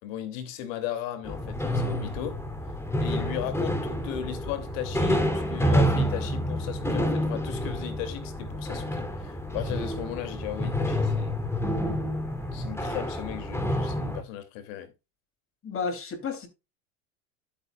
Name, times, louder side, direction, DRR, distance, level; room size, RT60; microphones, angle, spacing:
voice 1, 0.0-2.4 3.0-11.4 12.5-14.9, left 10 dB, 75° left, 2.9 m, -36 dB
sound 1, 1.2-14.2, equal, 5° left, 3.1 m, -28 dB
voice 2, 15.6-16.5, left 5 dB, 35° left, 3.3 m, -32 dB
12.0 x 8.6 x 2.4 m
supercardioid pair, 110°, 40 cm